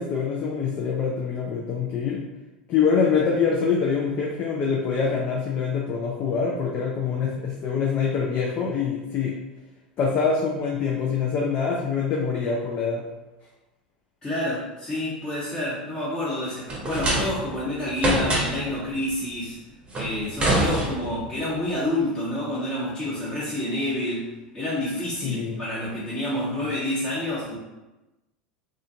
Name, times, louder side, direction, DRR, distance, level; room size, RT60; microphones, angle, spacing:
voice 1, 0.0-2.2 2.7-9.3 10.0-13.0 25.2-25.6, left 5 dB, 40° left, -2 dB, 0.5 m, -25 dB
voice 2, 14.2-19.6 19.9-24.3 24.5-27.6, left 1 dB, 20° left, -11 dB, 1.0 m, -28 dB
sound 1, 16.7-17.6 18.0-18.7 19.9-21.3, right 1 dB, 20° right, 0.8 m, -25 dB
2.4 x 2.3 x 2.7 m, 1.0 s
hypercardioid pair, 85°, 5 cm